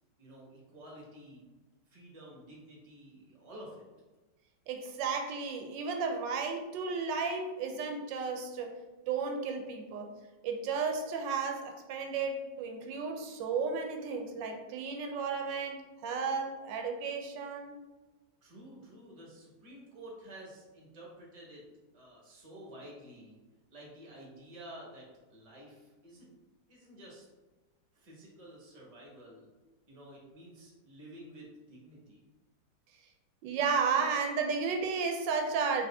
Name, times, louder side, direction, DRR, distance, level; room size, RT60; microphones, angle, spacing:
voice 1, 0.2-1.4 1.9-3.8 18.4-21.6 21.9-23.4 23.7-26.3 26.7-27.3 27.9-29.5 29.9-32.2, right 1 dB, 25° right, -3 dB, 0.9 m, -51 dB
voice 2, 4.7-8.7 9.1-10.1 10.4-17.8 33.4-35.9, right 5 dB, 85° right, 4 dB, 1.3 m, -33 dB
4.2 x 2.8 x 3.4 m, 1.2 s
omnidirectional pair, 1.9 m